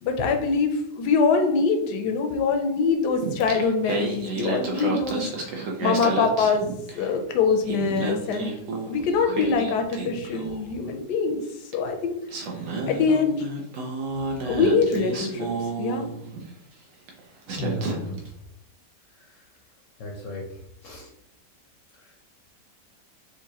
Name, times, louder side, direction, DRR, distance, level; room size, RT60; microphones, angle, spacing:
voice 1, 0.0-5.3 5.6-6.7 6.9-8.5 8.9-11.4 11.7-12.1 12.9-13.4 14.4-15.5 15.8-16.0, left 5 dB, 80° left, 5 dB, 1.2 m, -24 dB
Singing, 3.2-7.2 7.5-10.7 11.7-11.8 12.3-16.5 17.1-17.2 17.5-18.3, right 3 dB, 60° right, 1.0 m, -31 dB
voice 2, 17.5-18.2 19.3-19.4 20.0-21.1, left 2 dB, 60° left, -1 dB, 0.9 m, -35 dB
4.6 x 2.5 x 2.8 m, 0.76 s
omnidirectional pair, 1.8 m